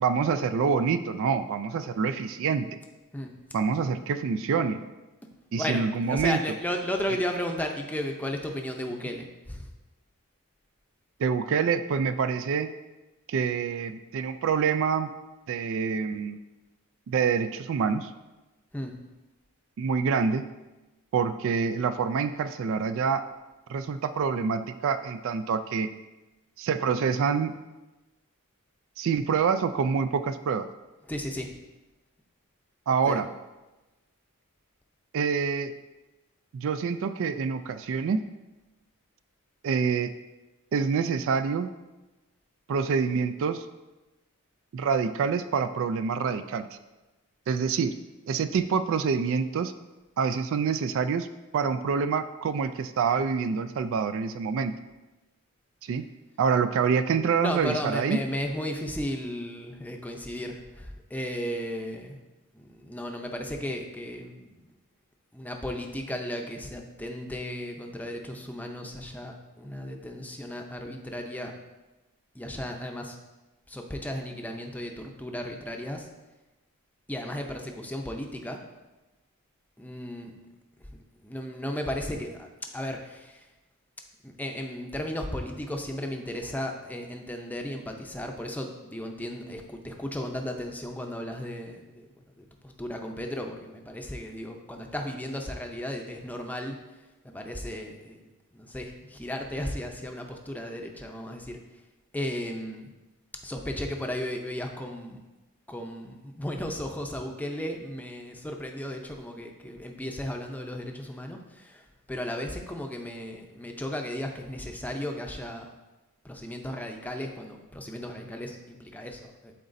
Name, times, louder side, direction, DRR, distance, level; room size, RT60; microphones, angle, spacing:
voice 1, 0.0-2.7 3.5-4.8 5.5-6.4 11.2-12.7 13.3-15.1 15.5-16.4 17.1-18.1 19.8-20.4 21.1-23.2 23.7-25.9 26.6-27.5 29.0-30.7 32.9-33.3 35.1-35.7 36.5-38.2 39.6-40.1 40.7-41.7 42.7-43.7 44.7-46.7 47.5-47.9 48.3-49.7 50.2-51.3 51.5-54.7 55.8-56.1 56.4-58.2, right 6 dB, 60° right, 10 dB, 0.3 m, -26 dB
voice 2, 5.6-9.7 18.7-18.9 31.1-31.5 33.1-33.2 57.4-62.2 62.5-64.6 65.3-71.5 72.3-73.2 73.7-76.1 77.1-78.6 79.8-80.3 80.9-82.5 82.7-83.4 84.2-92.1 92.4-96.8 97.2-101.6 102.1-102.9 103.4-105.2 105.7-115.7 116.2-119.5, left 1 dB, 5° left, 2 dB, 0.6 m, -35 dB
11.5 x 4.1 x 2.6 m, 1.1 s
head